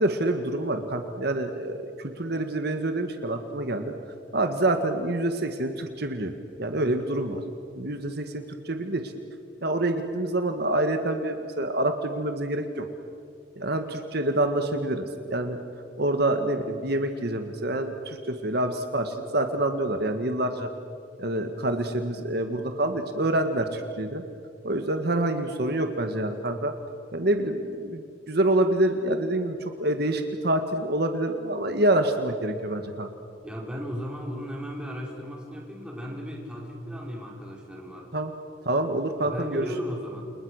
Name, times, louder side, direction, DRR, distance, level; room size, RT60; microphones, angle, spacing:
voice 1, 0.0-3.9 4.3-6.3 6.6-7.4 7.7-9.1 9.6-12.9 13.6-15.6 16.0-20.7 21.2-24.2 24.6-26.7 27.1-33.1 38.1-38.3 38.6-39.7, right 1 dB, 60° right, 6 dB, 1.7 m, -27 dB
voice 2, 33.4-38.1 39.1-40.2, equal, 5° right, -1 dB, 5.2 m, -36 dB
29.5 x 29.0 x 6.5 m, 2.5 s
head